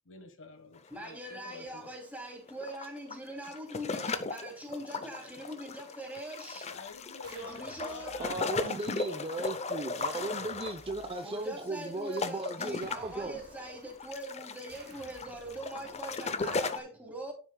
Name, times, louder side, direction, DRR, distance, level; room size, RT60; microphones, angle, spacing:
voice 1, 0.0-1.9 6.7-9.4, left 4 dB, 60° left, 1.3 m, -48 dB
sound 1, 0.8-0.9 1.2-1.3 2.2-16.8, left 4 dB, 30° left, 0.6 m, -37 dB
voice 2, 0.9-6.7 7.3-8.2 11.2-17.3, right 1 dB, 5° right, 2.8 m, -42 dB
sound 2, 6.9-8.8 10.0-11.6 12.8-14.3 14.7-16.3, right 3 dB, 50° right, 1.6 m, -57 dB
voice 3, 8.2-13.4, right 2 dB, 25° right, 0.6 m, -36 dB
10.0 x 7.6 x 2.2 m
head